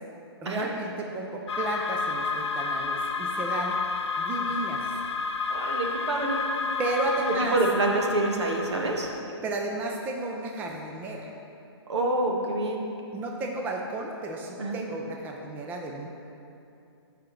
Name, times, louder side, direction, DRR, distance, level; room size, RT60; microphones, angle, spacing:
voice 1, 0.4-3.8 4.2-4.9 6.8-7.6 9.4-11.3 13.1-16.1, right 2 dB, 10° right, 1 dB, 0.4 m, -33 dB
sound 1, 1.5-9.2, left 4 dB, 75° left, 0.7 m, -30 dB
voice 2, 5.5-6.4 7.3-9.1 11.9-12.8 14.6-14.8, right 2 dB, 75° right, 0 dB, 1.4 m, -27 dB
13.5 x 4.9 x 3.2 m, 2.7 s
hypercardioid pair, 145°, 15 cm